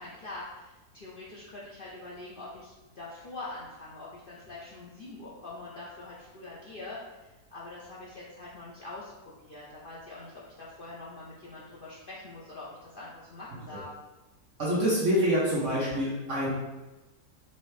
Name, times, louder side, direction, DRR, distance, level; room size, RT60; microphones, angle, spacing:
voice 1, 0.0-7.0 7.5-13.9, left 2 dB, 75° left, -6 dB, 0.5 m, -44 dB
voice 2, 14.6-16.5, equal, 55° right, -7 dB, 1.1 m, -26 dB
4.3 x 2.7 x 3.2 m, 1.1 s
omnidirectional pair, 1.7 m